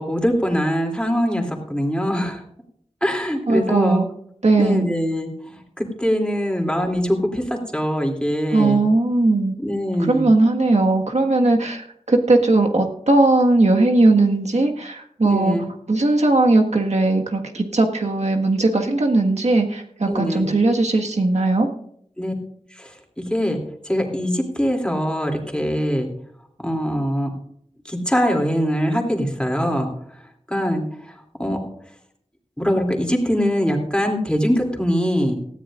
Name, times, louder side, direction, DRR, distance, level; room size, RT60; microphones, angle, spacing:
voice 1, 0.0-2.4 3.0-4.0 4.6-8.8 9.6-10.3 15.2-15.6 20.1-20.5 22.2-22.3 22.8-22.9 23.3-23.6 23.9-26.1 26.6-27.3 27.9-29.9 30.5-30.8 31.4-31.6 32.6-35.4, equal, 10° left, 1 dB, 2.9 m, -22 dB
voice 2, 3.5-4.1 4.4-4.9 8.5-9.5 10.0-15.6 15.9-21.7, right 2 dB, 65° right, 2 dB, 1.7 m, -18 dB
18.5 x 13.5 x 2.5 m, 0.69 s
wide cardioid pair, 55°, 12 cm